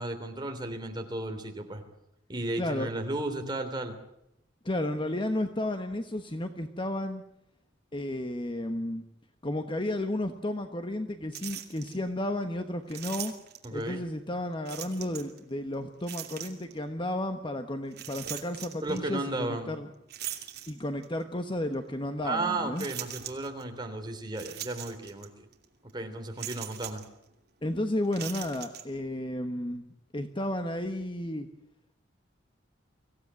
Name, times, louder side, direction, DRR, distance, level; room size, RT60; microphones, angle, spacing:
voice 1, 0.0-1.8 2.3-3.9 13.6-14.1 18.8-19.7 22.2-25.5 25.9-27.0, right 2 dB, 20° right, 4 dB, 3.3 m, -34 dB
voice 2, 2.6-2.9 4.6-7.2 7.9-9.0 9.4-13.3 13.7-19.9 20.7-22.9 27.6-31.5, left 1 dB, 25° left, 7 dB, 1.2 m, -33 dB
sound 1, 11.3-12.0 12.9-13.8 14.6-15.4 16.0-16.8 17.9-19.0 20.1-21.2 21.7-21.8 22.8-23.6 24.3-25.3 25.5-25.6 26.4-27.1 28.0-28.8, right 11 dB, 55° right, 2.8 m, -40 dB
24.5 x 16.0 x 9.6 m, 0.81 s
head